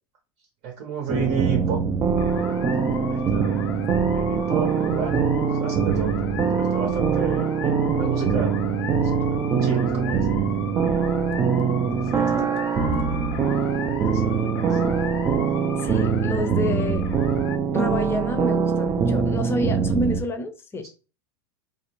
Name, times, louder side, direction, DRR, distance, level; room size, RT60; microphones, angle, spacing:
voice 1, 0.6-1.8 2.4-3.7 4.1-8.5 9.0-10.9 11.9-12.8 14.0-14.8 20.8-20.9, right 5 dB, 55° right, 3 dB, 0.7 m, -33 dB
sound 1, 1.1-20.2, right 6 dB, 25° right, 0.4 m, -23 dB
sound 2, 2.2-17.6, left 8 dB, 75° left, 0.5 m, -38 dB
voice 2, 15.8-17.1 17.7-20.9, left 1 dB, 20° left, 6 dB, 0.6 m, -28 dB
2.5 x 2.0 x 2.8 m, 0.32 s
hypercardioid pair, 100°, 13 cm